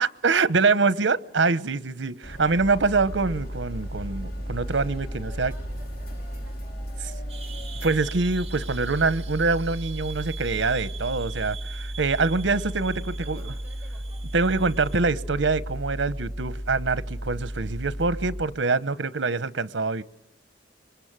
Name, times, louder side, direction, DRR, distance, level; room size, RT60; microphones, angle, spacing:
voice 1, 0.0-5.5 7.8-13.5 14.3-20.0, right 4 dB, 85° right, 1.0 m, -25 dB
sound 1, 2.2-18.4, equal, 50° left, 3.5 m, -34 dB
voice 2, 5.2-7.5 13.1-14.2, left 1 dB, 10° right, 5.1 m, -55 dB
sound 2, 7.3-15.0, right 7 dB, 35° right, 2.8 m, -44 dB
26.5 x 23.0 x 9.0 m
head